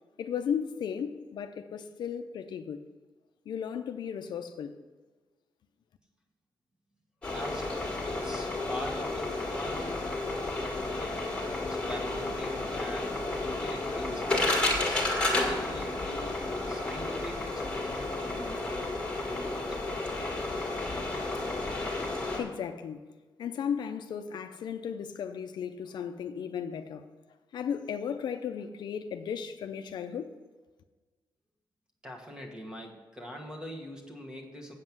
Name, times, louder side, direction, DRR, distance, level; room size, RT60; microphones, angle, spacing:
voice 1, 0.2-2.9 3.5-4.8 22.4-23.1 23.4-27.1 27.5-30.4, left 7 dB, 65° left, 0.5 m, -35 dB
sound 1, 7.2-22.4, left 2 dB, 15° left, 1.9 m, -32 dB
voice 2, 7.3-10.1 10.6-11.2 11.6-16.4 16.7-20.0 32.0-34.7, equal, 10° right, 1.4 m, -42 dB
8.2 x 7.6 x 6.0 m
wide cardioid pair, 170°, 8 cm